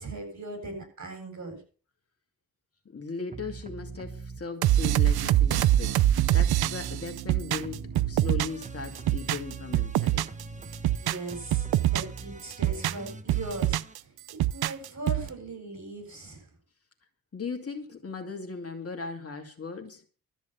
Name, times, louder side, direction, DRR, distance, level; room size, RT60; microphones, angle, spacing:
voice 1, 0.0-1.6 11.0-16.5, right 2 dB, 50° right, 7.9 m, -39 dB
voice 2, 2.9-6.0 6.3-10.3 17.3-20.0, left 4 dB, 40° left, 2.5 m, -38 dB
sound 1, 3.3-4.4 4.9-7.3 7.6-13.9, right 3 dB, 20° right, 1.2 m, -43 dB
sound 2, 4.6-8.7 8.9-10.4 10.7-12.2 12.5-14.0 14.3-15.3, right 13 dB, 75° right, 0.6 m, -24 dB
13.5 x 7.0 x 8.0 m
cardioid pair, 70°, 37 cm